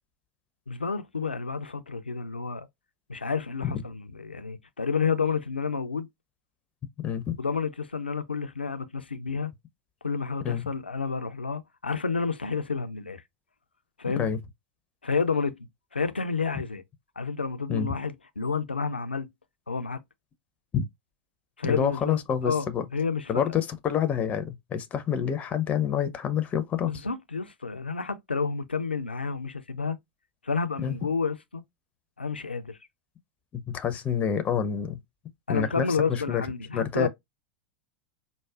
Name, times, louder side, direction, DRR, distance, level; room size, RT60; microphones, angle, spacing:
voice 1, 0.7-2.7 3.1-6.1 7.4-9.5 10.0-13.2 14.0-14.3 15.0-15.6 15.9-16.8 17.2-19.3 19.7-20.0 21.6-23.5 26.9-30.0 30.4-31.6 32.2-32.8 35.5-37.1, left 5 dB, 85° left, 0.4 m, -30 dB
voice 2, 7.0-7.4 10.4-10.6 14.2-14.4 17.7-17.9 20.7-20.9 21.6-22.8 23.3-27.0 30.8-30.9 33.5-35.0 35.5-36.4 36.7-37.1, left 8 dB, 25° left, 0.5 m, -27 dB
4.7 x 2.1 x 2.3 m
figure-of-eight pair, 85°, 5 cm